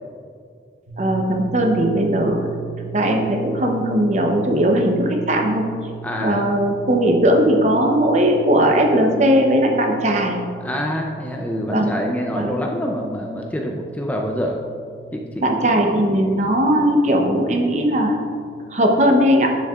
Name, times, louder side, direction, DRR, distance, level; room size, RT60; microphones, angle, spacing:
sound 1, 0.9-18.7, right 7 dB, 70° right, 1.0 m, -38 dB
voice 1, 1.0-2.6 2.9-5.7 6.2-10.4 11.7-11.9 12.3-12.5 15.4-18.2 18.7-19.5, equal, 40° right, 2 dB, 0.8 m, -18 dB
voice 2, 6.0-6.5 10.6-14.6 15.1-15.4, equal, 10° left, 0 dB, 0.4 m, -26 dB
9.8 x 7.1 x 2.4 m, 2.3 s
head